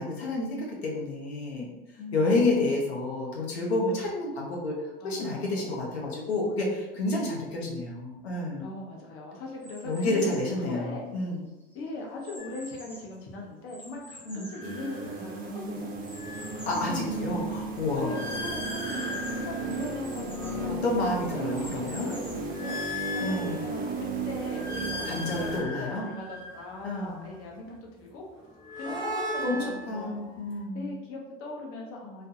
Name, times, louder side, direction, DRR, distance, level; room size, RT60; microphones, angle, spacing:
voice 1, 0.0-1.7 2.1-4.8 5.0-8.7 9.8-11.5 14.2-14.5 16.7-18.2 20.8-22.1 23.2-23.7 25.0-26.0 26.8-27.2 28.9-30.9, left 2 dB, 90° left, -3 dB, 0.6 m, -29 dB
voice 2, 2.0-2.4 5.0-5.8 7.4-7.8 8.6-11.1 11.7-15.9 16.8-17.1 18.0-20.8 21.1-28.3 28.8-32.3, left 2 dB, 45° left, -1 dB, 0.8 m, -40 dB
sound 1, 9.6-10.6 11.2-13.2 13.7-15.4 16.0-17.0 17.4-17.5 17.8-17.9 18.6-20.6 21.2-22.6, equal, 5° left, 0.8 m, -48 dB
sound 2, 12.4-12.6 14.3-15.5 15.9-20.8 21.3-23.9 24.4-27.3 28.3-30.6, left 1 dB, 30° left, 1.2 m, -39 dB
sound 3, 14.6-25.6, right 3 dB, 30° right, 0.5 m, -35 dB
2.3 x 2.2 x 2.6 m, 1.0 s
hypercardioid pair, 90°, 31 cm